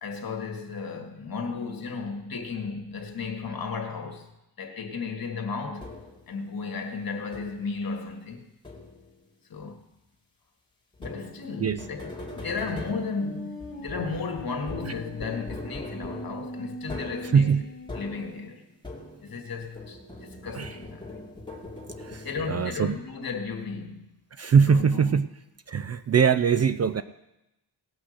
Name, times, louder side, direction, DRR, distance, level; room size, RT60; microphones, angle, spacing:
voice 1, 0.0-4.3 4.6-5.9 6.3-8.5 9.5-9.8 11.0-17.6 17.9-18.6 19.2-21.2 22.2-24.1 24.6-25.2, left 4 dB, 55° left, 1.8 m, -34 dB
sound 1, 5.8-6.3 7.3-7.8 8.6-9.2 10.9-19.5 19.7-22.9, left 2 dB, 10° left, 2.2 m, -41 dB
sound 2, 13.1-18.4, right 1 dB, 30° left, 1.8 m, -41 dB
voice 2, 22.0-22.9 24.4-25.3 25.7-27.0, right 6 dB, 40° right, 0.4 m, -22 dB
17.5 x 6.1 x 6.5 m
wide cardioid pair, 115°, 42 cm